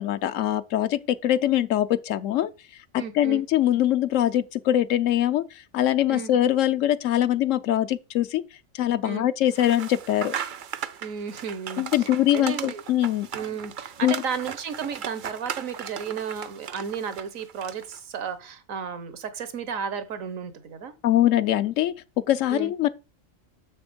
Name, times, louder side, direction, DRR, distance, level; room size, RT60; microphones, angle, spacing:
voice 1, 0.0-2.5 3.1-5.5 5.7-8.4 8.7-10.3 11.8-13.3 14.0-14.2 21.0-21.9 22.3-22.9, left 12 dB, 75° left, 1.0 m, -23 dB
voice 2, 3.0-3.4 6.1-6.3 9.0-9.2 11.0-12.8 13.3-20.9 22.5-22.7, right 7 dB, 80° right, 1.5 m, -33 dB
sound 1, 9.5-18.0, right 8 dB, 50° right, 0.6 m, -37 dB
6.9 x 6.3 x 5.2 m
omnidirectional pair, 1.4 m